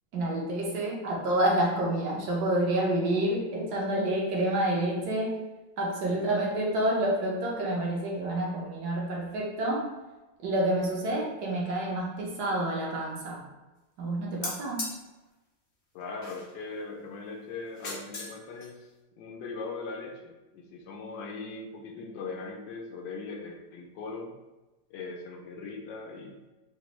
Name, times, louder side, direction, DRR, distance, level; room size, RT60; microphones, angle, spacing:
voice 1, 0.1-5.3 5.8-9.9 10.4-13.4 14.0-14.9, right 1 dB, 60° right, -3 dB, 1.4 m, -28 dB
sound 1, 14.4-15.0 16.2-16.6 17.7-18.4 18.6-18.7, left 2 dB, 55° left, 0.8 m, -37 dB
voice 2, 15.9-18.9 19.2-24.3 24.9-26.5, left 3 dB, 75° left, 1 dB, 1.2 m, -40 dB
4.1 x 2.5 x 3.0 m, 1.1 s
omnidirectional pair, 2.0 m